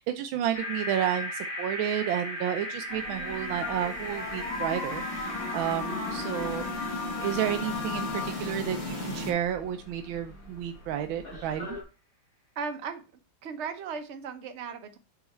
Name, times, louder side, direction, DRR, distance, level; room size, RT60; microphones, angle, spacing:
voice 1, 0.0-6.7 7.2-11.8, right 10 dB, 85° right, 6 dB, 1.4 m, -31 dB
sound 1, 0.5-8.7, left 1 dB, 80° left, 3.6 m, -38 dB
sound 2, 2.9-11.8, left 4 dB, 45° left, 2.2 m, -38 dB
sound 3, 2.9-9.3, left 2 dB, 25° left, 1.6 m, -37 dB
voice 2, 12.6-13.0 13.4-15.0, right 5 dB, 50° right, 6 dB, 0.9 m, -36 dB
7.1 x 3.9 x 4.3 m, 0.32 s
omnidirectional pair, 2.2 m